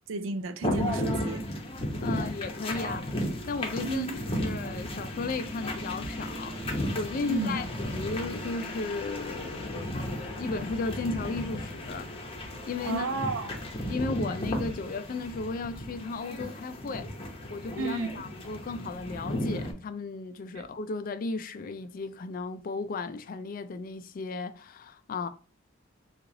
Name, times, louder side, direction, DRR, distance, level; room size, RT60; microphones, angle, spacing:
voice 1, 0.1-1.4 3.8-4.2 7.2-7.6 12.8-13.5 17.8-18.1 20.5-20.6, right 3 dB, 70° right, 0.4 m, -32 dB
sound 1, 0.6-19.7, left 1 dB, 30° left, 0.8 m, -34 dB
voice 2, 2.0-4.1 4.4-6.6 7.0-12.1 12.7-13.1 13.9-17.1 17.5-25.3, left 3 dB, 45° left, 0.3 m, -35 dB
3.1 x 2.4 x 3.7 m
head